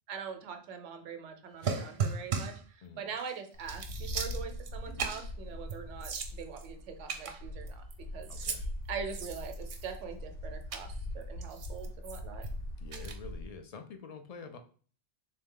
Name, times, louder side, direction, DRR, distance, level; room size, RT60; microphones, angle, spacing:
voice 1, 0.1-7.8 8.1-12.4, right 6 dB, 85° right, 6 dB, 1.0 m, -43 dB
sound 1, 1.6-2.7 3.2-3.3 3.6-4.7 5.0-5.3 5.7-5.8 6.0-6.7 7.1-7.9 8.2-8.6 9.1-10.0 10.7-10.9 11.4-12.5 12.9-13.2, right 5 dB, 55° right, 0.6 m, -36 dB
Wind, 3.5-13.6, left 1 dB, 90° left, 1.0 m, -42 dB
voice 2, 8.3-8.7 12.8-14.6, left 4 dB, 60° left, 6 dB, 0.4 m, -47 dB
3.4 x 2.7 x 3.6 m, 0.42 s
omnidirectional pair, 1.2 m